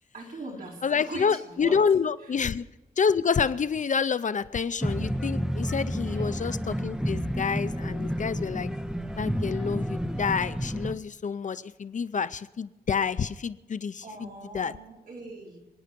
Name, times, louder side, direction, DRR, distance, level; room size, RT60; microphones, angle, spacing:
voice 1, 0.1-1.8 2.2-2.4 6.1-6.3 14.0-15.6, right 2 dB, 60° right, -3 dB, 4.3 m, -40 dB
voice 2, 0.8-2.7 3.0-8.7 9.2-14.3 14.5-14.7, left 6 dB, 50° left, 14 dB, 0.5 m, -28 dB
sound 1, 4.8-10.9, equal, 5° right, 0.8 m, -30 dB
27.5 x 9.5 x 5.2 m, 1.0 s
wide cardioid pair, 160°, 17 cm